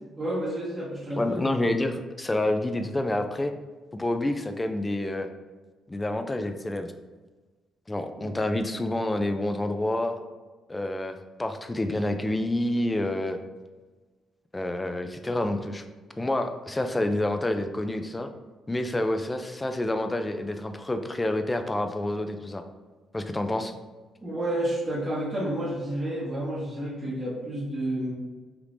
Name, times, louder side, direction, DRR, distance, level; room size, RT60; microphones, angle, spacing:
voice 1, 0.2-1.4 8.2-8.3 24.2-28.1, right 1 dB, 20° right, -6 dB, 0.9 m, -30 dB
voice 2, 1.2-3.5 3.9-5.3 5.9-6.9 7.9-10.2 10.7-13.4 14.5-15.8 16.2-18.3 18.7-22.6 23.1-23.7, left 1 dB, 15° left, 7 dB, 0.3 m, -28 dB
3.4 x 3.0 x 2.5 m, 1.3 s
cardioid pair, 90°, 0 cm